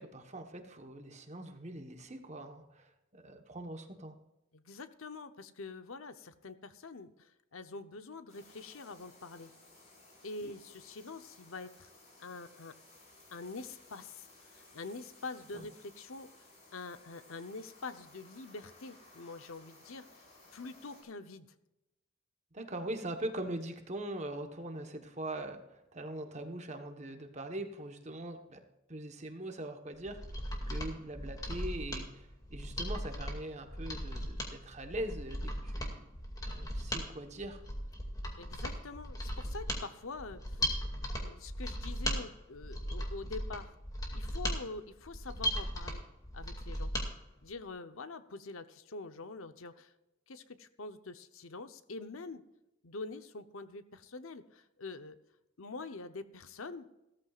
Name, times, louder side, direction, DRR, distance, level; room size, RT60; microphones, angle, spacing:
voice 1, 0.0-4.2 15.5-15.6 22.5-28.6 28.9-36.1 36.4-37.6, right 1 dB, 35° right, 5 dB, 1.2 m, -42 dB
voice 2, 4.5-9.5 10.2-11.9 12.2-12.8 13.3-16.3 16.7-20.3 20.5-21.6 38.4-40.7 41.1-43.8 44.1-46.0 46.3-46.9 47.4-49.9 50.3-52.4 52.8-55.2 55.6-56.9, left 3 dB, 85° left, 11 dB, 0.9 m, -45 dB
sound 1, 8.3-21.0, left 2 dB, 35° left, 4.9 m, -59 dB
Mechanisms, 30.0-47.1 47.4-47.5, equal, 20° left, 2.3 m, -37 dB
16.5 x 13.5 x 2.5 m, 0.92 s
head